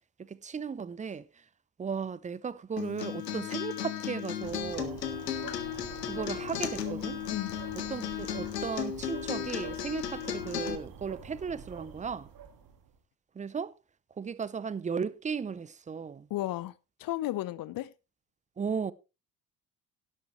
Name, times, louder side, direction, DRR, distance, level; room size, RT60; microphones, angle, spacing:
voice 1, 0.2-1.4 1.8-5.0 6.0-7.2 7.9-12.3 13.3-13.7 14.2-16.3 18.6-18.9, right 6 dB, 15° right, 0.7 m, -36 dB
Acoustic guitar, 2.8-10.8, left 9 dB, 80° left, 1.1 m, -35 dB
sound 1, 4.4-13.0, right 7 dB, 45° right, 1.9 m, -47 dB
voice 2, 16.3-16.7 17.0-17.9, left 15 dB, 45° left, 0.8 m, -33 dB
12.0 x 11.5 x 3.2 m
figure-of-eight pair, 60°, 48 cm